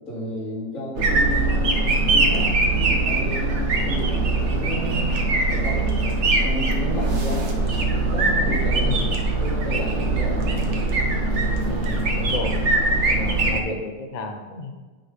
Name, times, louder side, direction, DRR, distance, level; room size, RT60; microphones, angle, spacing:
voice 1, 0.1-5.1 5.5-6.0 6.4-7.5 7.7-9.0 9.4-10.5, left 1 dB, 45° left, -7 dB, 3.3 m, -32 dB
sound 1, 1.0-13.6, right 2 dB, 50° right, 1.0 m, -22 dB
voice 2, 11.7-12.5 13.1-14.7, left 2 dB, 75° left, 4 dB, 0.3 m, -32 dB
9.0 x 3.8 x 5.7 m, 1.3 s
omnidirectional pair, 1.9 m